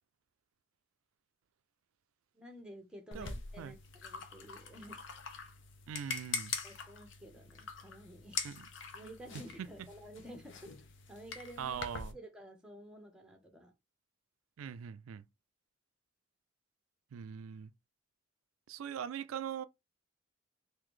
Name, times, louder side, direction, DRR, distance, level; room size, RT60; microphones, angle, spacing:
voice 1, 2.3-3.8 4.0-5.0 6.6-8.5 8.9-10.8 11.1-11.8 12.1-13.7, equal, 5° right, 0.8 m, -51 dB
sound 1, 3.1-12.1, left 5 dB, 65° left, 0.7 m, -44 dB
voice 2, 3.1-3.8 5.9-6.5 8.4-8.6 9.3-9.4 11.6-12.2 14.6-15.2 17.1-17.7 18.7-19.6, right 8 dB, 85° right, 0.3 m, -41 dB
3.9 x 2.7 x 3.1 m
head